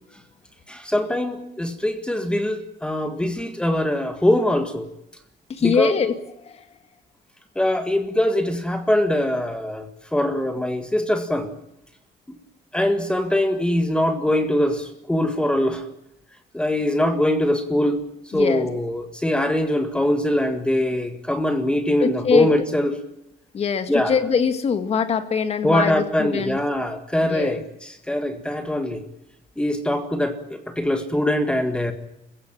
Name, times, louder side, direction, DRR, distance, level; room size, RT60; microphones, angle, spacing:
voice 1, 0.7-4.9 5.6-5.9 7.5-11.5 12.3-12.4 12.7-15.8 16.5-18.0 18.3-23.0 23.9-24.1 25.6-29.0 29.6-31.9, left 1 dB, 5° left, 7 dB, 1.7 m, -22 dB
voice 2, 5.5-6.1 6.4-6.8 18.3-18.7 22.0-22.5 23.5-26.6 27.2-27.6, left 6 dB, 35° left, 9 dB, 2.1 m, -23 dB
27.0 x 16.0 x 8.9 m, 0.83 s
cardioid pair, 175°, 17 cm